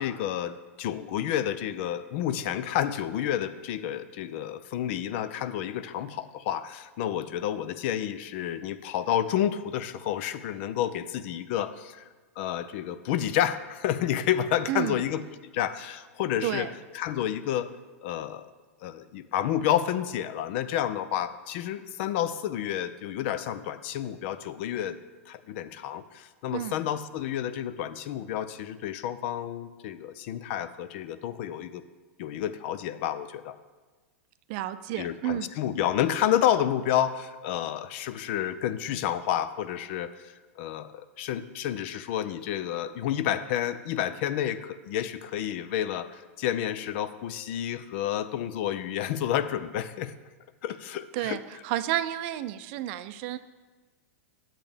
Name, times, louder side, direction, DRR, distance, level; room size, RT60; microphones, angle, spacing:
voice 1, 0.0-12.0 12.4-16.7 16.9-17.7 18.0-18.5 18.8-25.0 25.3-31.8 32.2-33.6 35.0-50.1 50.6-51.4, left 10 dB, 55° left, 14 dB, 0.5 m, -30 dB
voice 2, 14.7-15.0 16.4-16.7 26.5-26.8 34.5-35.5 51.1-53.4, right 13 dB, 50° right, 12 dB, 0.5 m, -31 dB
10.0 x 7.4 x 3.4 m, 1.3 s
hypercardioid pair, 120°, 8 cm